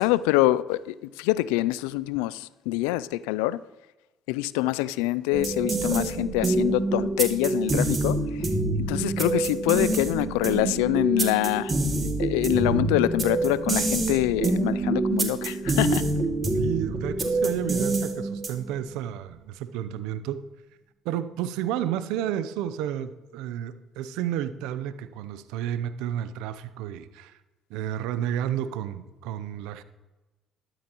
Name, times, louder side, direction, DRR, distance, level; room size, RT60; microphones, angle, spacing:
voice 1, 0.0-3.6 4.3-8.5 8.8-11.7 12.2-16.1, left 16 dB, 85° left, 0.3 m, -25 dB
sound 1, 5.3-18.8, right 2 dB, 35° right, 2.3 m, -26 dB
voice 2, 16.5-20.5 21.0-27.4 27.7-29.8, right 10 dB, 80° right, 0.6 m, -31 dB
12.5 x 12.0 x 3.0 m
supercardioid pair, 65°, 0 cm